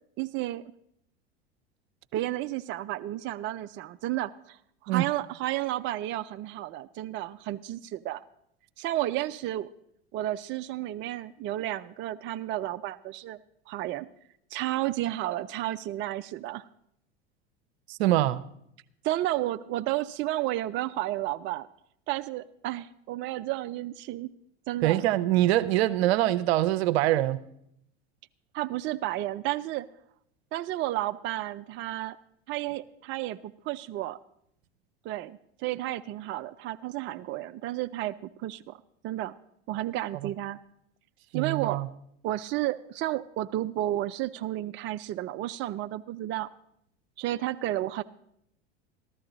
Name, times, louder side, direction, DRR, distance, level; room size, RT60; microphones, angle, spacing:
voice 1, 0.2-0.7 2.1-8.2 8.8-9.7 10.1-13.4 13.7-14.1 14.5-16.7 19.0-21.7 22.1-24.3 24.7-25.1 28.5-29.9 30.5-32.2 32.5-34.2 35.0-38.8 39.0-39.3 39.7-40.6 41.3-41.8 42.2-46.5 47.2-48.0, right 15 dB, 35° right, 0.4 m, -32 dB
voice 2, 17.9-18.4 24.8-27.4 40.2-40.3 41.3-41.9, right 15 dB, 75° right, 0.7 m, -24 dB
14.0 x 12.0 x 3.9 m
hypercardioid pair, 95°, 32 cm